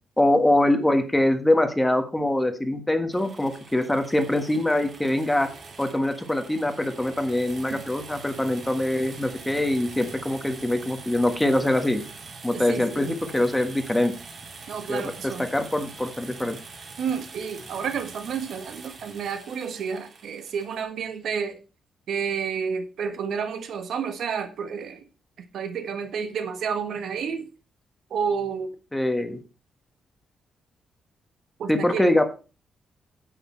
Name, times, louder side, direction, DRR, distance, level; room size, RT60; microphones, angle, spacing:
voice 1, 0.2-5.5 5.8-12.0 12.4-14.1 14.9-16.6 28.9-29.4 31.7-32.2, left 1 dB, 5° left, 1.3 m, -23 dB
sound 1, 3.1-20.8, right 4 dB, 50° right, 3.0 m, -44 dB
voice 2, 12.5-13.2 14.7-15.5 17.0-21.6 22.1-25.0 25.5-27.5 28.1-28.7 31.6-32.1, right 6 dB, 65° right, 1.5 m, -30 dB
9.5 x 8.4 x 4.4 m
wide cardioid pair, 160°, 0 cm